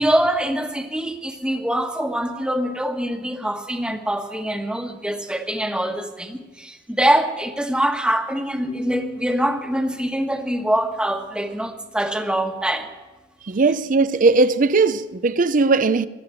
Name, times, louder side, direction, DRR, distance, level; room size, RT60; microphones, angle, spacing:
voice 1, 0.0-12.9, right 1 dB, 5° right, 1.3 m, -24 dB
sound 1, 8.6-12.1, equal, 85° left, 4.8 m, -37 dB
voice 2, 13.4-16.1, right 3 dB, 45° right, 0.6 m, -18 dB
21.0 x 7.8 x 8.8 m
head